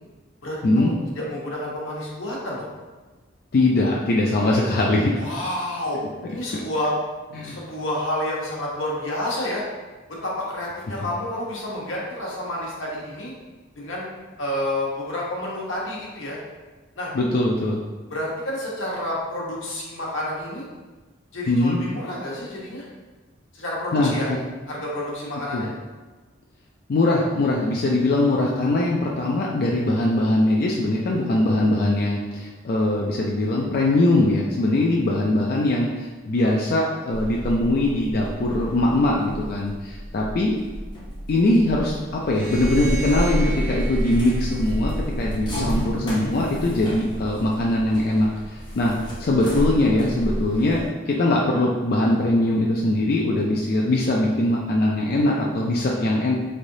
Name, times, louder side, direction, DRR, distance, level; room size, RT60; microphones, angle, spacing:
voice 1, 0.4-2.7 5.2-6.0 6.3-6.9 7.4-9.6 10.2-13.3 13.8-14.1 14.4-16.4 17.0-17.1 18.1-20.7 21.3-22.9 23.5-24.3 24.7-25.7, left 1 dB, 85° left, -4 dB, 1.0 m, -29 dB
voice 2, 3.5-5.3 7.3-7.6 17.1-17.8 21.5-21.8 23.9-24.1 25.5-25.6 26.9-40.5 41.3-42.0 42.3-44.9 45.2-48.9 49.2-56.3, left 1 dB, 50° left, -2 dB, 0.3 m, -21 dB
sound 1, 37.1-50.9, equal, 20° left, 0.8 m, -30 dB
sound 2, 42.2-45.5, right 1 dB, 10° right, 0.9 m, -37 dB
3.7 x 3.3 x 2.6 m, 1.3 s
head